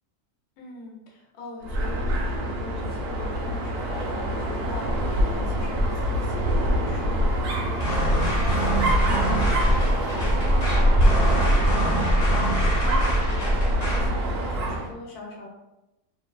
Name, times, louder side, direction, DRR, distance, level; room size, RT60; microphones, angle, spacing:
voice 1, 0.6-15.5, left 3 dB, 90° left, -2 dB, 1.2 m, -42 dB
Dog, 1.6-14.9, equal, 65° right, 0.6 m, -25 dB
sound 1, 7.8-14.1, right 1 dB, 45° left, 0.5 m, -24 dB
2.7 x 2.3 x 2.2 m, 0.95 s
omnidirectional pair, 1.6 m